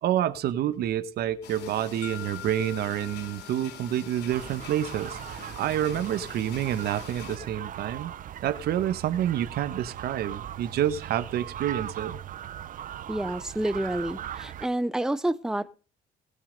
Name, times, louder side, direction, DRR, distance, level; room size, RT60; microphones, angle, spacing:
voice 1, 0.0-8.1 8.4-12.2, right 11 dB, 70° right, 1.5 m, -28 dB
sound 1, 1.4-7.4, left 9 dB, 90° left, 2.7 m, -45 dB
sound 2, 2.0-6.0, left 10 dB, 65° left, 2.7 m, -46 dB
sound 3, 4.3-14.7, right 10 dB, 50° right, 0.9 m, -39 dB
voice 2, 13.1-15.7, right 1 dB, 5° right, 1.0 m, -29 dB
19.5 x 7.0 x 5.4 m
cardioid pair, 110°, 17 cm